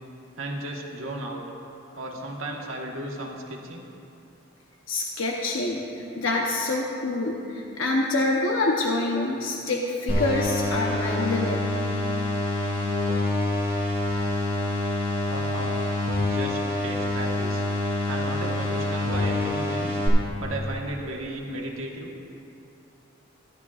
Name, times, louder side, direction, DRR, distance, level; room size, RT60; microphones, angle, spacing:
voice 1, 0.4-1.4 1.9-3.9 15.3-15.8 16.2-17.6 18.1-20.0 20.4-22.1, right 1 dB, 80° right, -1 dB, 1.4 m, -34 dB
voice 2, 4.9-11.7, left 2 dB, 75° left, -1 dB, 0.9 m, -26 dB
sound 1, 10.1-20.1, left 2 dB, 35° left, 2.5 m, -26 dB
15.5 x 11.0 x 2.4 m, 2.7 s
head